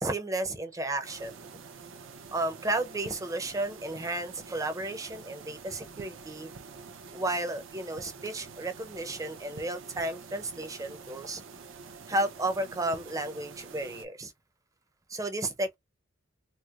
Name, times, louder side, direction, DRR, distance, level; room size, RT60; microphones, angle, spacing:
voice 1, 0.0-1.4 2.3-6.5 7.1-11.4 12.1-14.3 15.1-15.8, right 2 dB, 15° right, 0.7 m, -33 dB
sound 1, 1.0-14.1, right 5 dB, 80° right, 0.7 m, -47 dB
4.4 x 2.1 x 2.4 m
head